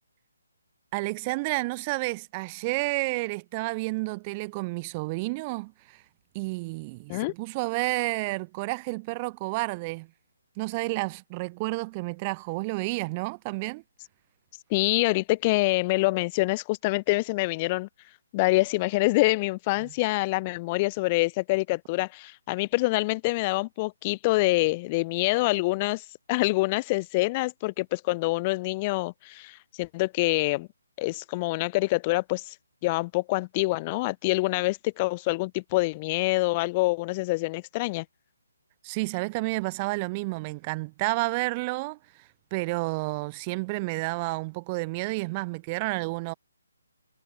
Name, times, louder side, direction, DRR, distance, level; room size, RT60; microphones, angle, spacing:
voice 1, 0.9-6.0 6.3-10.1 10.6-13.8 19.8-19.9 38.8-42.0 42.5-46.3, right 25 dB, 25° right, 3.6 m, -30 dB
voice 2, 14.7-17.9 18.3-30.7 31.0-32.6 32.8-38.1, left 23 dB, 25° left, 3.5 m, -26 dB
figure-of-eight pair, 145°, 0 cm